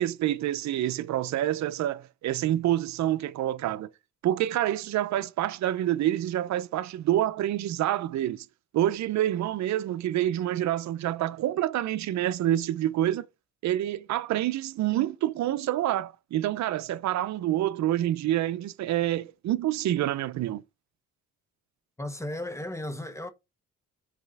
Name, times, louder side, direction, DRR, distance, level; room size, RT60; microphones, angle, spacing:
voice 1, 0.0-3.9 4.2-8.5 8.7-13.2 13.6-20.6, right 13 dB, 65° right, 0.6 m, -27 dB
voice 2, 22.0-23.3, left 1 dB, 10° left, 1.1 m, -35 dB
5.1 x 4.2 x 6.0 m
cardioid pair, 90°, 30 cm